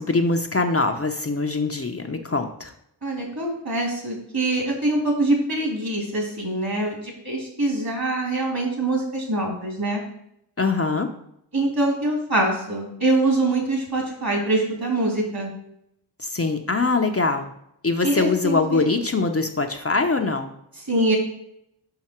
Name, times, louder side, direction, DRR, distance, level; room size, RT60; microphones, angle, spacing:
voice 1, 0.0-2.7 10.6-11.1 16.2-17.5 17.8-20.5, left 3 dB, 35° left, 4 dB, 0.7 m, -23 dB
voice 2, 3.0-10.0 11.5-15.5 18.0-18.9 20.9-21.2, right 2 dB, 55° right, 0 dB, 2.8 m, -24 dB
5.9 x 5.6 x 4.3 m, 0.75 s
wide cardioid pair, 45°, 43 cm